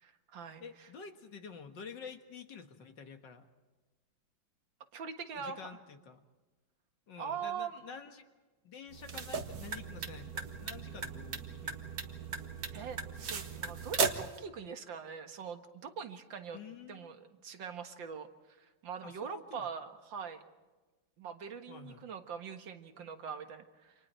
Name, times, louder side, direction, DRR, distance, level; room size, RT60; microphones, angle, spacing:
voice 1, 0.0-0.9 4.9-5.7 7.2-7.8 12.7-16.6 16.9-20.4 21.2-23.9, right 6 dB, 75° right, 7 dB, 2.3 m, -43 dB
voice 2, 0.6-3.5 5.4-6.2 7.1-8.2 8.6-11.8 16.5-17.1 19.0-19.7 21.7-22.1, left 6 dB, 70° left, 6 dB, 2.3 m, -49 dB
sound 1, 8.9-14.4, right 5 dB, 55° right, 1.9 m, -37 dB
29.0 x 27.0 x 4.5 m, 1.2 s
omnidirectional pair, 2.1 m